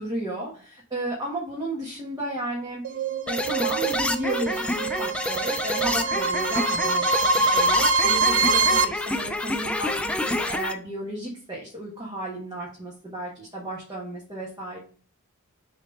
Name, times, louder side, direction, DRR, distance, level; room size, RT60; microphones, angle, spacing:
voice 1, 0.0-2.8 3.3-14.8, right 1 dB, 20° right, -4 dB, 1.3 m, -33 dB
sound 1, 2.8-8.8, right 3 dB, 60° right, 0.6 m, -24 dB
sound 2, 3.3-10.7, left 1 dB, 5° left, 0.3 m, -28 dB
6.7 x 3.2 x 5.2 m, 0.42 s
head